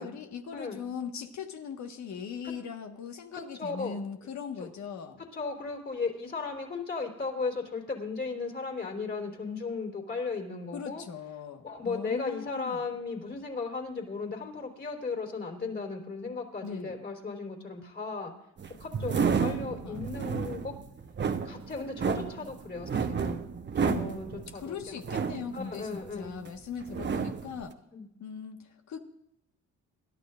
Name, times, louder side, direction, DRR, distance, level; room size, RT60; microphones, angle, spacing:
voice 1, 0.0-5.2 10.7-12.9 16.6-17.0 18.9-19.3 19.8-20.1 23.8-24.0 24.5-27.8 28.2-29.0, left 6 dB, 65° left, 5 dB, 1.6 m, -40 dB
voice 2, 3.6-4.0 4.6-4.7 5.3-11.0 11.6-18.3 18.8-20.7 21.4-23.5 23.8-24.9 25.5-26.4 27.9-28.1, left 4 dB, 35° left, 1 dB, 3.6 m, -36 dB
sound 1, 18.6-26.5 26.8-27.6, right 6 dB, 35° right, 1.0 m, -31 dB
27.5 x 12.0 x 2.5 m, 0.84 s
cardioid pair, 90°, 30 cm